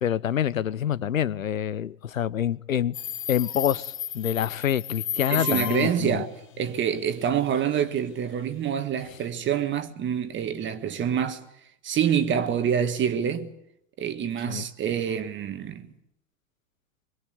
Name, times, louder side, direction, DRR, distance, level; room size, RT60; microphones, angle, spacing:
voice 1, 0.0-2.9 3.3-6.2 14.5-14.7, left 10 dB, 75° left, 1.0 m, -26 dB
Subway metro underground, 2.9-6.1, left 9 dB, 30° left, 1.8 m, -32 dB
voice 2, 5.3-11.4 11.8-13.5 14.0-15.9, right 8 dB, 30° right, 1.7 m, -26 dB
24.5 x 24.5 x 8.3 m
figure-of-eight pair, 90°, 40 cm